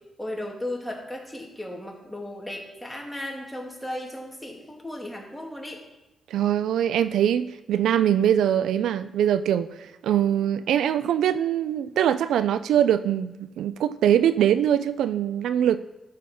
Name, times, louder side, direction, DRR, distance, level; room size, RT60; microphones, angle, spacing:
voice 1, 0.2-5.8, left 1 dB, 5° left, 2.2 m, -35 dB
voice 2, 6.3-15.8, right 10 dB, 90° right, 0.3 m, -22 dB
13.5 x 5.4 x 4.3 m
cardioid pair, 90°, 0 cm